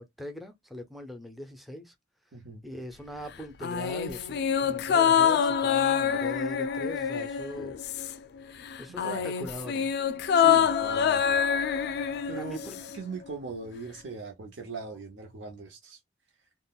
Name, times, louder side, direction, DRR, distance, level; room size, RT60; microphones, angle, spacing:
voice 1, 0.0-1.9 2.6-7.7 8.8-9.9 12.4-12.8, left 1 dB, ahead, 0.4 m, -41 dB
voice 2, 2.3-2.6 8.9-9.2 10.3-11.4 12.3-12.6 12.9-16.0, right 4 dB, 75° right, 0.6 m, -39 dB
sound 1, 3.6-8.4 8.6-13.0 13.3-13.4, left 8 dB, 60° left, 0.3 m, -26 dB
3.6 x 2.1 x 2.3 m
head